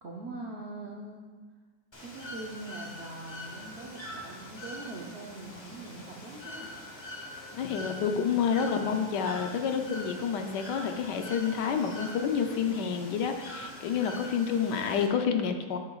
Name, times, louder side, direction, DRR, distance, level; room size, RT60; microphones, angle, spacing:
voice 1, 0.0-1.2 2.0-6.7, right 2 dB, 60° right, -2 dB, 0.6 m, -42 dB
Bird / Water, 1.9-15.1, left 1 dB, 20° left, 0.8 m, -44 dB
voice 2, 7.6-15.8, left 7 dB, 70° left, 5 dB, 1.2 m, -29 dB
9.9 x 7.9 x 2.3 m, 1.4 s
omnidirectional pair, 2.1 m